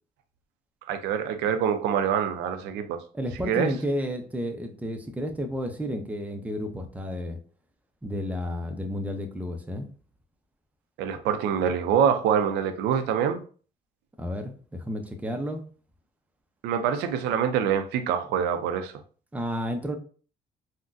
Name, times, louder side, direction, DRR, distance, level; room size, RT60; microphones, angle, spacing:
voice 1, 0.9-3.0 3.4-3.7 11.0-13.4 16.6-18.9, right 8 dB, 85° right, 8 dB, 0.5 m, -25 dB
voice 2, 3.1-7.4 8.0-9.9 14.2-15.6 19.3-20.0, equal, 10° right, 5 dB, 0.5 m, -31 dB
3.7 x 2.1 x 2.5 m, 0.40 s
cardioid pair, 110°, 17 cm